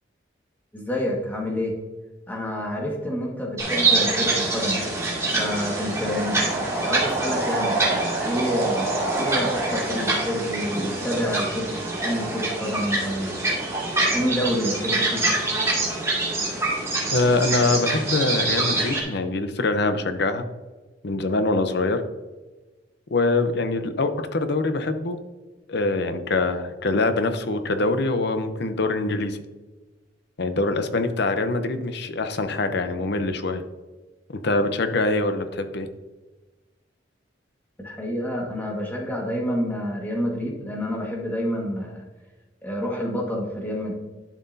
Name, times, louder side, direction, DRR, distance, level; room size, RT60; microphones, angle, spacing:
voice 1, 0.7-1.8 2.3-4.8 5.4-6.6 6.8-7.8 8.2-11.7 12.0-13.3 14.1-15.4 37.8-42.0 42.6-43.9, equal, 10° left, -2 dB, 1.7 m, -28 dB
sound 1, 3.6-19.0, right 2 dB, 15° right, 2.4 m, -25 dB
voice 2, 17.1-20.4 21.0-22.0 23.1-25.2 25.7-29.4 30.4-33.6 34.3-35.9, left 2 dB, 65° left, 8 dB, 0.8 m, -24 dB
11.5 x 6.0 x 2.7 m, 1.2 s
head